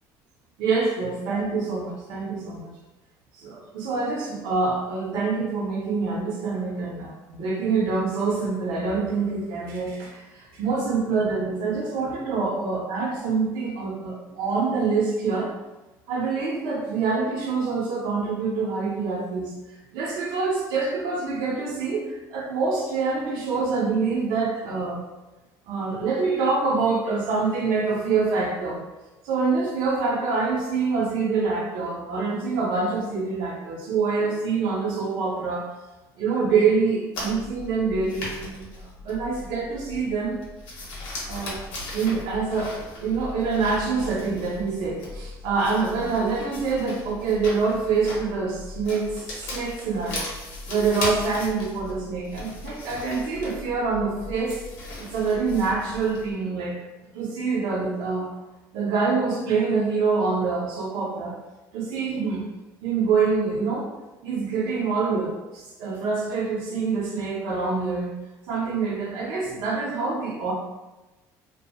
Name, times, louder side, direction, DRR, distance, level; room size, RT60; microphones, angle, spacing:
voice 1, 0.6-2.7 3.4-15.5 16.1-19.5 19.9-25.0 25.7-28.8 29.2-35.6 36.2-40.4 41.3-41.6 41.9-50.3 50.7-54.6 55.0-56.8 57.1-58.3 58.7-61.4 61.7-62.4 62.8-63.9 64.2-68.1 68.5-70.5, right 4 dB, 85° right, -1 dB, 0.7 m, -26 dB
sound 1, 37.1-56.3, left 2 dB, 85° left, 0.9 m, -38 dB
2.9 x 2.5 x 2.2 m, 1.1 s
cardioid pair, 160°, 8 cm